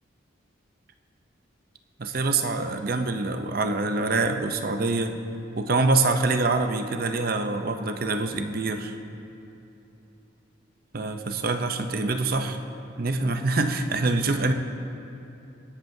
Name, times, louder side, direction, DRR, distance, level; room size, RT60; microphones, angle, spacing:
voice 1, 2.0-5.1 5.6-8.9 10.9-12.6 13.0-14.5, right 3 dB, 45° right, 7 dB, 0.6 m, -25 dB
18.0 x 11.5 x 2.7 m, 2.9 s
head